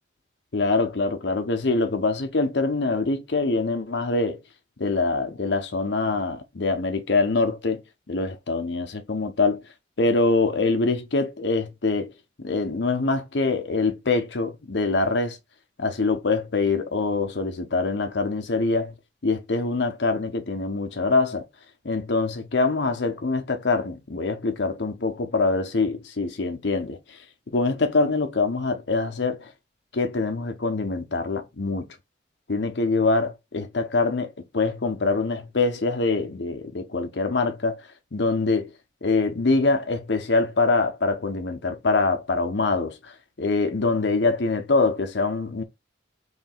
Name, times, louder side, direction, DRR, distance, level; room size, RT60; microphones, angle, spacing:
voice 1, 0.5-4.4 4.8-7.8 8.1-9.6 10.0-12.1 12.4-15.4 15.8-18.9 19.2-21.4 21.8-27.2 27.5-29.5 29.9-31.9 32.5-37.8 38.1-38.7 39.0-45.6, left 3 dB, 70° left, 0.8 m, -24 dB
3.2 x 2.8 x 4.3 m
head